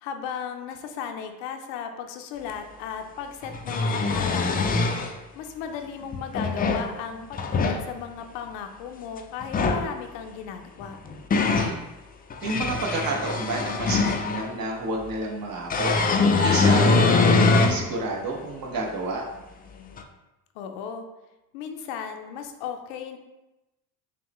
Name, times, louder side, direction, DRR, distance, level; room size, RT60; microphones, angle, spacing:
voice 1, 0.0-4.8 5.3-11.0 20.5-21.1 21.5-23.2, left 7 dB, 85° left, 6 dB, 0.6 m, -36 dB
sound 1, 2.5-2.6 3.4-5.1 6.1-6.9 7.3-7.8 9.4-9.9 10.8-11.7 12.3-14.5 15.7-17.8 18.3-18.4 20.0-20.1, left 3 dB, 20° left, 0.3 m, -22 dB
voice 2, 11.4-11.8 12.4-16.0 16.4-19.2, right 2 dB, 50° right, -1 dB, 1.1 m, -30 dB
5.9 x 2.1 x 3.0 m, 1.0 s
supercardioid pair, 85°, 44 cm